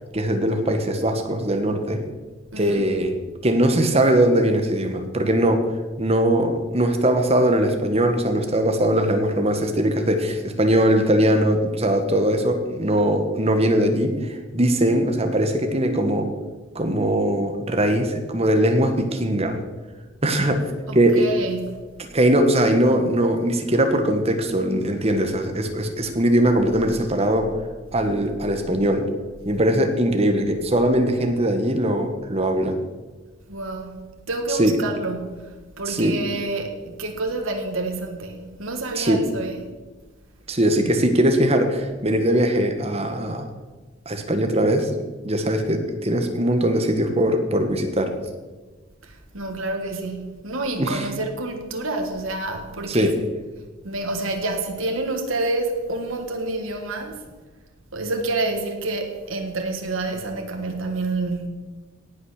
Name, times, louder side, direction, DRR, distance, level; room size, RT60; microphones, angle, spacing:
voice 1, 0.1-2.0 2.5-3.1 3.4-5.7 6.0-16.3 16.7-19.6 20.2-21.3 22.1-27.6 27.9-29.1 29.4-32.8 34.5-34.8 35.9-36.2 38.9-39.2 40.5-43.5 44.0-44.9 45.2-48.2 50.8-51.1 52.9-53.2, right 1 dB, 30° right, 1.4 m, -21 dB
voice 2, 2.5-2.9 20.9-21.8 33.5-34.0 34.3-39.7 49.0-53.1 53.8-57.2 57.9-61.5, right 2 dB, 80° right, 1.6 m, -28 dB
18.0 x 6.3 x 6.5 m
head